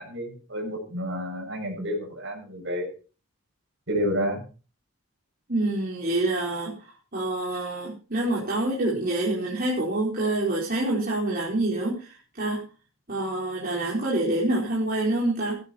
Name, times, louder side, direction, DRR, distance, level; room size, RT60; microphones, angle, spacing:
voice 1, 0.0-2.9 3.9-4.4, equal, 60° right, 1 dB, 7.1 m, -30 dB
voice 2, 5.5-12.6 13.1-15.6, right 2 dB, 45° right, -6 dB, 4.7 m, -27 dB
15.5 x 12.0 x 4.4 m, 0.36 s
head